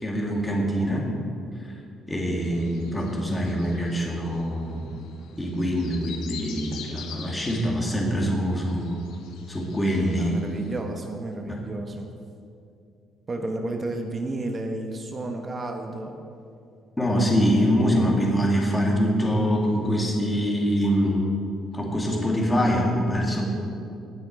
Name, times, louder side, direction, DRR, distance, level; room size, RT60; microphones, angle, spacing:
voice 1, 0.0-1.1 1.6-1.7 2.1-4.9 5.4-9.0 9.5-10.4 11.5-11.7 17.0-21.2 21.7-23.5, equal, 15° left, -1 dB, 2.2 m, -24 dB
voice 2, 2.3-2.7 10.1-12.1 13.3-16.2, right 2 dB, 30° right, 4 dB, 1.0 m, -32 dB
sound 1, 2.4-10.8, left 6 dB, 90° left, 1.3 m, -45 dB
18.0 x 6.3 x 4.7 m, 2.5 s
cardioid pair, 115°, 0 cm